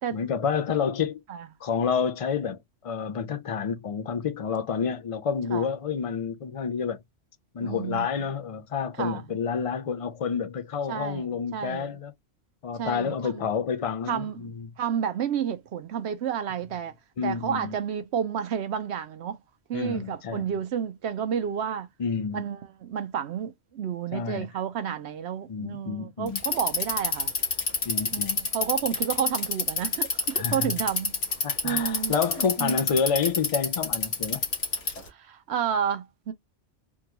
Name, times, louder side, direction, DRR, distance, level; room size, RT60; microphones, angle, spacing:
voice 1, 0.1-1.2 1.6-2.6 2.8-7.0 7.5-12.1 12.6-14.7 17.2-17.7 19.7-20.4 22.0-22.4 24.1-24.5 25.5-26.4 27.9-28.4 30.4-30.7 31.4-34.4, left 6 dB, 60° left, 0.3 m, -29 dB
voice 2, 7.6-8.1 9.0-9.4 10.9-11.9 12.7-13.5 14.1-16.9 17.2-19.4 19.7-21.9 22.3-27.3 28.1-31.1 31.6-32.2 32.6-32.8 35.0-36.3, right 8 dB, 65° right, 0.8 m, -31 dB
Bicycle, 26.3-35.1, left 3 dB, 85° left, 1.6 m, -27 dB
3.7 x 2.3 x 2.8 m
omnidirectional pair, 1.2 m